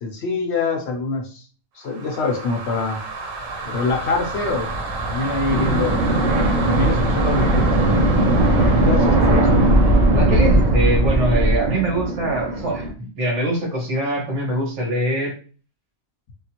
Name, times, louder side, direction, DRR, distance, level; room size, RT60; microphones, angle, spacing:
voice 1, 0.0-1.4 1.7-3.0 3.6-4.7 5.1-6.0 6.5-8.3 8.6-9.6, left 3 dB, 65° left, 3 dB, 0.8 m, -25 dB
sound 1, 1.9-11.7, right 1 dB, 90° right, 1.1 m, -21 dB
sound 2, 5.5-12.9, right 2 dB, 50° right, 0.6 m, -21 dB
voice 2, 10.1-15.4, right 1 dB, 65° right, -1 dB, 1.5 m, -23 dB
3.6 x 2.3 x 2.8 m, 0.39 s
omnidirectional pair, 1.3 m